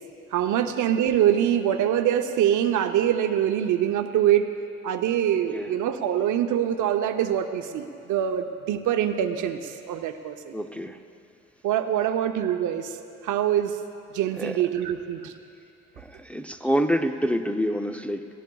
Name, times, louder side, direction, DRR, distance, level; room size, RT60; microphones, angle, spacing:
voice 1, 0.3-4.5 4.8-10.5 11.6-13.0 13.2-13.8 14.1-15.3, right 10 dB, 80° right, 7 dB, 0.7 m, -24 dB
voice 2, 10.5-11.0 14.4-14.6 16.0-18.3, equal, 5° left, 5 dB, 0.4 m, -27 dB
21.0 x 15.0 x 2.3 m, 2.6 s
cardioid pair, 90°, 30 cm